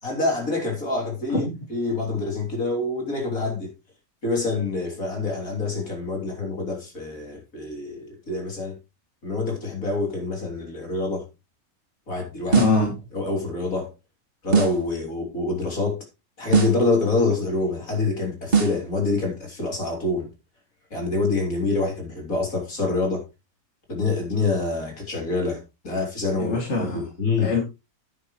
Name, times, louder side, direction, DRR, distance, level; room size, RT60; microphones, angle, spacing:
voice 1, 0.0-3.7 4.2-8.8 9.2-11.3 12.1-12.6 13.1-13.9 14.4-16.0 16.4-20.3 20.9-23.2 23.9-27.5, left 3 dB, 65° left, 3.8 m, -26 dB
voice 2, 12.5-12.9 26.4-27.0 27.4-27.6, left 3 dB, 50° left, 3.0 m, -23 dB
sound 1, 12.5-12.9 14.5-14.9 16.5-16.9 18.5-18.9, right 5 dB, 40° right, 2.1 m, -21 dB
11.0 x 9.7 x 3.2 m
omnidirectional pair, 1.6 m